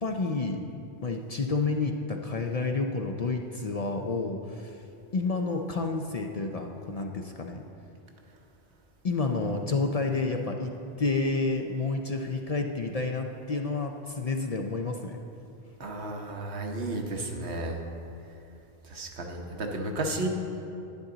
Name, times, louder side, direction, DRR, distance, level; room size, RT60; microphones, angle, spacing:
voice 1, 0.0-0.7 1.0-4.8 5.1-7.6 9.0-10.7 11.0-15.2, left 3 dB, 45° left, 3 dB, 0.5 m, -30 dB
voice 2, 15.8-17.8 18.8-20.3, right 2 dB, 90° right, 2 dB, 1.3 m, -33 dB
10.5 x 9.8 x 3.9 m, 2.8 s
omnidirectional pair, 1.1 m